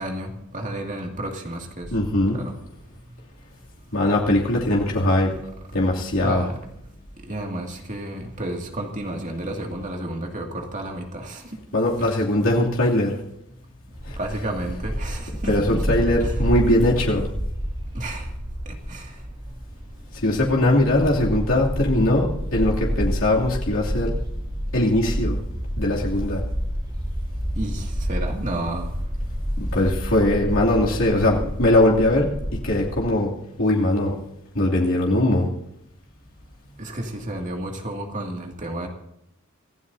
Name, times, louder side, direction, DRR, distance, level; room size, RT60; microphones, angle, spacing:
voice 1, 0.0-1.9 2.3-2.5 6.2-6.6 7.3-11.4 12.0-12.2 14.2-16.3 17.9-18.3 18.9-19.1 27.6-28.9 31.1-31.3 36.8-38.9, right 1 dB, 40° right, 1 dB, 2.3 m, -31 dB
voice 2, 1.9-2.4 3.9-5.3 5.7-6.4 11.7-13.2 14.0-14.2 15.5-17.3 20.2-24.1 24.7-25.4 25.8-26.4 29.6-34.1 34.5-35.5, left 1 dB, 75° left, -4 dB, 2.8 m, -21 dB
Bark, 13.9-33.0, equal, 25° right, 4.0 m, -29 dB
26.0 x 16.0 x 2.7 m, 0.79 s
head